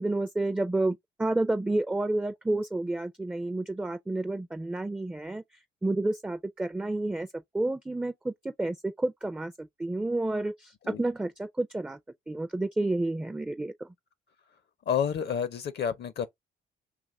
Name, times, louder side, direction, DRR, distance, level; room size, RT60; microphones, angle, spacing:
voice 1, 0.0-5.4 5.8-7.3 7.5-8.3 8.6-12.0 12.3-13.7, right 2 dB, 5° right, 0.4 m, -30 dB
voice 2, 14.9-16.3, left 8 dB, 55° left, 0.6 m, -29 dB
3.0 x 2.3 x 4.1 m
cardioid pair, 90°, 20 cm